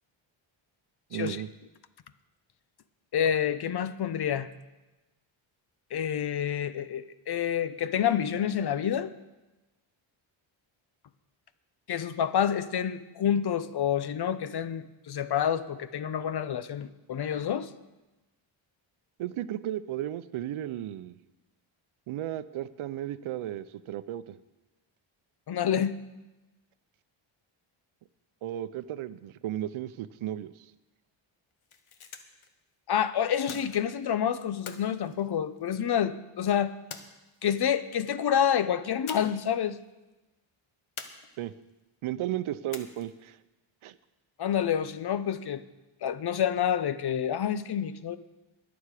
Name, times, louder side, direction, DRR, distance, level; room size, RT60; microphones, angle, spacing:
voice 1, 1.1-1.5 19.2-21.2 22.1-24.4 28.4-30.7 41.4-41.5 42.0-43.4 43.8-43.9, right 12 dB, 80° right, 14 dB, 0.7 m, -34 dB
voice 2, 3.1-4.5 5.9-9.1 11.9-17.7 25.5-26.0 32.9-36.7 37.4-39.8 44.4-45.6 46.0-48.2, left 9 dB, 50° left, 13 dB, 0.7 m, -28 dB
sound 1, 31.5-32.5 33.5-34.1 34.7-35.9 36.9-37.7 39.1-39.5 39.8-39.9 41.0-41.7 42.7-43.3, left 6 dB, 75° left, 1.2 m, -45 dB
21.0 x 7.2 x 4.9 m, 1.1 s
cardioid pair, 110°, 49 cm